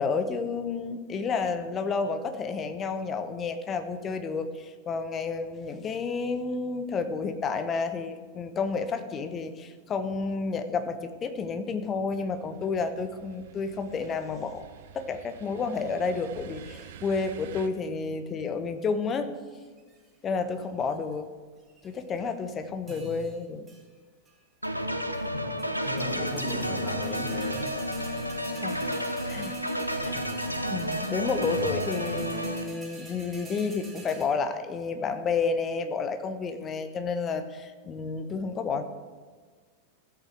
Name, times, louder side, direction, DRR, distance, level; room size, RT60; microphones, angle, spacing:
voice 1, 0.0-14.6 14.9-19.3 20.2-21.3 21.8-23.7 28.5-28.8 29.3-29.6 30.0-30.2 30.7-38.8, left 4 dB, 25° left, 9 dB, 0.9 m, -30 dB
sound 1, 12.1-17.7, right 10 dB, 55° right, 0.7 m, -48 dB
sound 2, 19.6-20.1 20.6-21.1 21.6-22.3 22.9-23.4 23.7-23.8 24.3-24.4 24.6-25.3 25.6-34.2, right 3 dB, 15° right, 3.1 m, -48 dB
voice 2, 22.8-23.2 25.3-25.6 25.8-27.7 30.0-30.4 31.4-31.8, left 1 dB, 60° left, -2 dB, 3.4 m, -37 dB
sound 3, 24.6-32.6, equal, 90° right, 0.7 m, -31 dB
15.5 x 8.3 x 3.4 m, 1.5 s
figure-of-eight pair, 90°, 0 cm